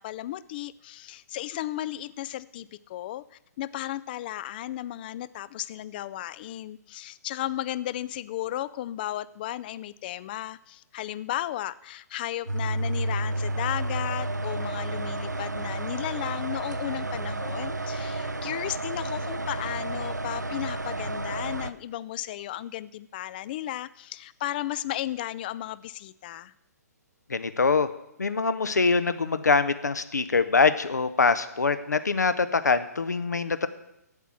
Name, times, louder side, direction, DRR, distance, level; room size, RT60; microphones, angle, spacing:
voice 1, 0.0-3.3 3.6-26.5, left 13 dB, 35° left, 18 dB, 0.3 m, -34 dB
sound 1, 12.5-21.7, right 2 dB, 90° right, 0.6 m, -31 dB
voice 2, 27.3-27.9 28.2-33.7, left 4 dB, 75° left, 13 dB, 0.8 m, -24 dB
8.2 x 8.1 x 7.3 m, 0.83 s
figure-of-eight pair, 125°, 9 cm